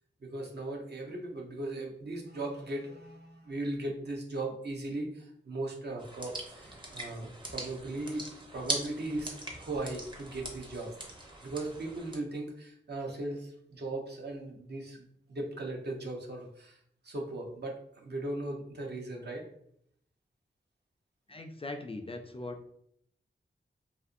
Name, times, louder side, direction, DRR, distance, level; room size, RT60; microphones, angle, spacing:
voice 1, 0.2-8.3 8.5-11.0 11.4-16.8 17.0-19.5, right 2 dB, 60° right, 0 dB, 0.7 m, -38 dB
sound 1, 6.0-12.2, right 2 dB, 25° right, 0.7 m, -41 dB
voice 2, 21.3-22.7, left 2 dB, 30° left, 4 dB, 0.3 m, -40 dB
2.6 x 2.5 x 2.5 m, 0.70 s
cardioid pair, 45°, 20 cm